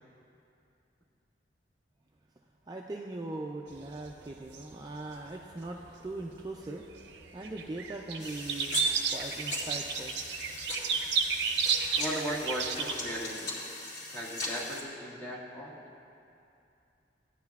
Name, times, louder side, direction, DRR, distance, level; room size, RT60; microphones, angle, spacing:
voice 1, 2.7-6.8 7.3-8.8 9.1-10.1, right 2 dB, 20° right, 0 dB, 0.3 m, -40 dB
sound 1, 3.7-6.2 6.6-13.1, right 6 dB, 70° right, 0.6 m, -32 dB
sound 2, 8.2-14.8, left 2 dB, 90° left, 2.2 m, -39 dB
voice 2, 12.0-13.5 14.1-15.8, equal, 15° left, -7 dB, 1.6 m, -37 dB
15.0 x 9.7 x 2.3 m, 2.7 s
head